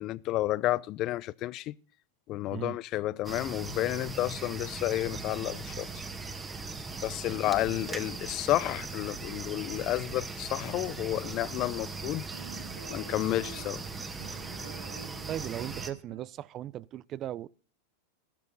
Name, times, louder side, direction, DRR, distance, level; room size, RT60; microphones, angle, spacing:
voice 1, 0.0-1.7 2.3-5.9 7.0-12.2 12.9-13.8, left 16 dB, 45° left, 0.5 m, -31 dB
sound 1, 3.2-15.9, right 4 dB, 15° right, 1.6 m, -39 dB
sound 2, 10.7-16.3, right 6 dB, 85° right, 1.7 m, -49 dB
voice 2, 15.3-17.5, right 12 dB, 40° right, 0.5 m, -38 dB
13.5 x 13.0 x 4.0 m
hypercardioid pair, 100°, 0 cm